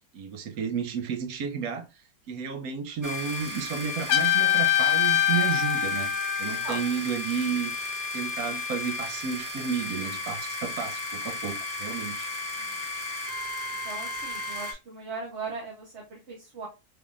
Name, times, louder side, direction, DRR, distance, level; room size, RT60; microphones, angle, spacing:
voice 1, 0.1-1.9 2.3-6.1 6.4-7.7 8.1-12.3, right 7 dB, 75° right, 1.2 m, -32 dB
sound 1, 3.0-14.7, left 2 dB, 20° right, 0.5 m, -34 dB
Trumpet, 4.1-6.9, left 12 dB, 80° left, 1.1 m, -24 dB
voice 2, 13.8-16.7, right 4 dB, 55° right, 1.0 m, -38 dB
3.5 x 3.5 x 2.4 m
omnidirectional pair, 1.6 m